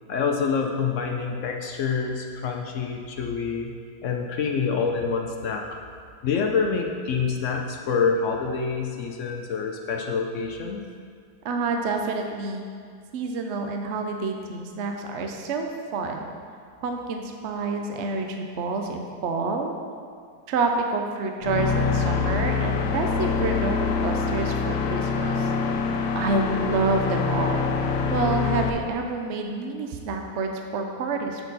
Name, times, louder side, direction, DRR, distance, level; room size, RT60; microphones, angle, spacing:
voice 1, 0.1-3.7 4.0-5.6 6.2-10.9, left 5 dB, 65° left, 2 dB, 0.8 m, -26 dB
voice 2, 11.4-12.6 13.1-16.2 16.8-19.8 20.5-25.5 26.1-27.6 28.1-31.4, right 3 dB, 65° right, 3 dB, 0.7 m, -28 dB
sound 1, 21.4-28.7, left 5 dB, 85° left, 1.2 m, -25 dB
8.0 x 6.3 x 4.0 m, 2.1 s
omnidirectional pair, 1.8 m